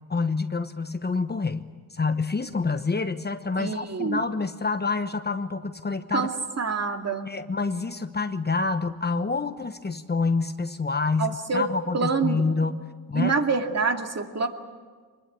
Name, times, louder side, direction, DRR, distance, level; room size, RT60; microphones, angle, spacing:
voice 1, 0.1-6.3 7.3-12.8 13.1-13.4, left 4 dB, 25° left, 9 dB, 1.0 m, -27 dB
voice 2, 3.6-4.2 6.1-7.3 11.2-11.7 11.9-12.4 13.1-14.5, right 4 dB, 40° right, 4 dB, 2.4 m, -26 dB
23.5 x 21.0 x 9.2 m, 1.5 s
cardioid pair, 80°, 38 cm